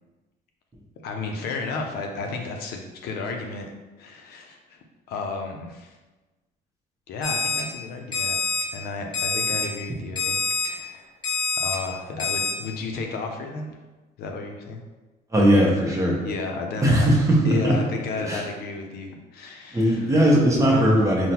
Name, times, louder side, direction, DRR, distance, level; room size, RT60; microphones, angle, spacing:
voice 1, 1.0-3.7 4.0-4.8 5.1-5.9 7.1-8.4 8.7-10.4 10.6-11.2 11.6-13.7 14.2-14.8 16.2-17.1 17.4-20.1 20.6-20.9, left 3 dB, 70° left, 3 dB, 0.5 m, -32 dB
Alarm, 7.2-7.6 8.1-8.6 9.1-9.6 10.2-10.7 11.2-11.7 12.2-12.5, left 4 dB, 30° left, 1.0 m, -25 dB
voice 2, 15.3-16.2 16.8-17.7 18.3-18.4 19.7-21.3, right 1 dB, 20° right, -3 dB, 0.8 m, -19 dB
3.8 x 2.1 x 2.8 m, 1.2 s
cardioid pair, 110°, 17 cm